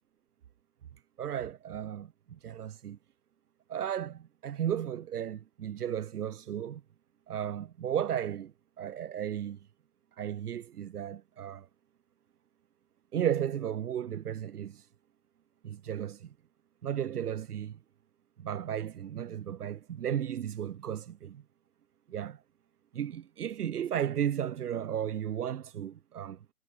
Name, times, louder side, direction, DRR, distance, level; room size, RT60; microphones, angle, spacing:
voice 1, 1.2-3.0 3.7-6.8 7.3-9.6 10.2-11.7 13.1-14.8 15.6-16.3 16.8-17.8 18.4-21.4 22.1-22.4 22.9-26.5, right 9 dB, 70° right, 1.6 m, -34 dB
hypercardioid pair, 145°, 47 cm